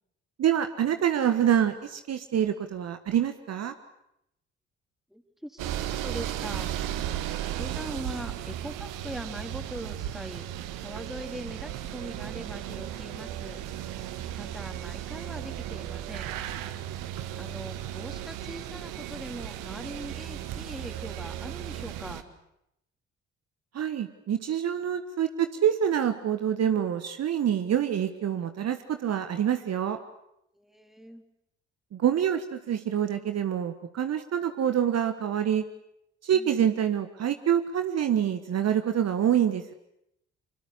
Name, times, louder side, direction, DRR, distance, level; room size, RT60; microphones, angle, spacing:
voice 1, 0.4-3.7 23.7-30.0 31.9-35.6 36.2-39.7, right 9 dB, 50° right, 9 dB, 1.5 m, -26 dB
voice 2, 5.1-5.6 5.9-6.7 7.6-10.5 10.8-13.6 14.3-16.4 17.4-22.3 30.5-31.2 36.3-36.7, equal, ahead, 5 dB, 3.7 m, -41 dB
sound 1, 5.6-22.2, right 12 dB, 65° right, 1.6 m, -35 dB
26.0 x 23.5 x 8.3 m, 0.80 s
figure-of-eight pair, 45°, 34 cm